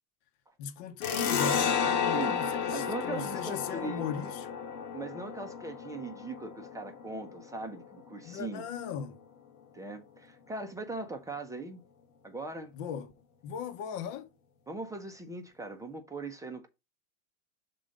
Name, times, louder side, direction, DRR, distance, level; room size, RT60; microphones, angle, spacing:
voice 1, 0.6-4.5 8.2-9.2 12.7-13.1 13.4-14.3, left 7 dB, 45° left, 1.2 m, -38 dB
sound 1, 1.0-8.2, left 7 dB, 70° left, 1.6 m, -32 dB
voice 2, 2.7-4.1 4.9-8.6 9.7-11.8 12.2-12.7 14.7-16.7, right 3 dB, 5° right, 0.7 m, -40 dB
6.2 x 3.8 x 5.2 m
hypercardioid pair, 125°, 46 cm